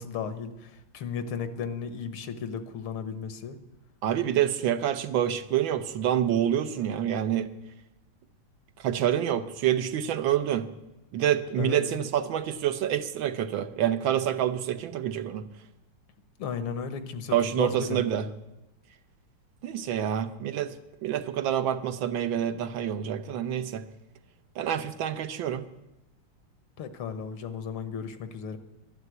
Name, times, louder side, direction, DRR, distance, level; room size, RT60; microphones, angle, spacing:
voice 1, 0.0-3.6 11.6-11.8 16.4-18.0 26.8-28.6, left 6 dB, 85° left, 10 dB, 1.9 m, -35 dB
voice 2, 4.0-7.5 8.8-10.7 11.1-15.4 17.3-18.2 19.6-20.7 21.0-23.8 24.6-25.6, right 10 dB, 70° right, 10 dB, 1.5 m, -27 dB
12.0 x 11.5 x 8.1 m, 0.96 s
omnidirectional pair, 2.3 m